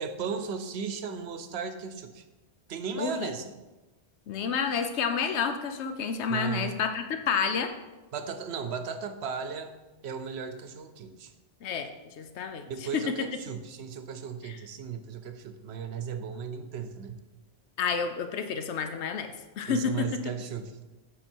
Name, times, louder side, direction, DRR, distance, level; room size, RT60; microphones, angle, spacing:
voice 1, 0.0-2.2 2.7-3.5 6.3-6.7 8.1-9.7 10.0-11.3 12.7-17.2 19.7-20.8, right 6 dB, 70° right, 9 dB, 0.9 m, -36 dB
voice 2, 3.0-3.3 4.3-7.7 11.6-11.9 12.2-13.1 14.4-14.6 17.8-20.2, left 6 dB, 80° left, 7 dB, 0.9 m, -30 dB
8.9 x 4.5 x 4.4 m, 1.1 s
omnidirectional pair, 1.1 m